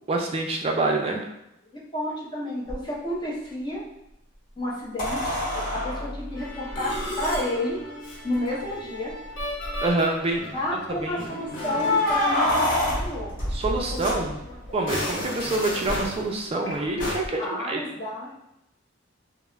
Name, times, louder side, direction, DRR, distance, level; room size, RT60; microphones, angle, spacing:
voice 1, 0.1-1.3 9.8-11.3 13.5-14.4 14.7-17.8, right 2 dB, 30° right, 2 dB, 0.3 m, -27 dB
voice 2, 1.7-3.8 4.6-7.8 8.2-9.1 10.5-13.3 13.7-14.0 14.7-14.8 17.4-18.3, left 1 dB, 25° left, -6 dB, 0.7 m, -31 dB
sound 1, 2.7-2.8 5.0-7.4 8.3-8.4 8.7-8.8 9.4-9.9 11.6-14.7 17.2-17.3, left 2 dB, 45° left, 1.0 m, -27 dB
Musical instrument, 6.4-13.2 13.5-13.7 13.9-14.1 14.7-17.2, left 1 dB, 65° left, 0.6 m, -35 dB
2.3 x 2.0 x 3.1 m, 0.84 s
head